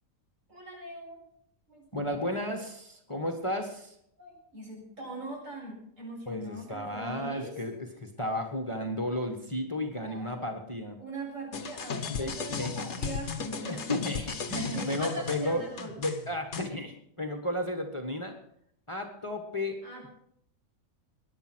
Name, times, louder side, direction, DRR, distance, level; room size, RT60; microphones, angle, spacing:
voice 1, 0.5-1.2 1.7-2.3 4.2-7.5 10.0-10.4 11.0-13.8 14.5-16.0 19.8-20.1, right 2 dB, 60° right, -3 dB, 7.8 m, -41 dB
voice 2, 1.9-3.9 6.3-11.0 12.1-12.7 13.6-18.4 18.9-19.8, left 1 dB, 20° left, 3 dB, 1.6 m, -33 dB
sound 1, 11.5-16.7, left 6 dB, 55° left, 1.4 m, -36 dB
21.0 x 10.5 x 6.3 m, 0.71 s
omnidirectional pair, 1.5 m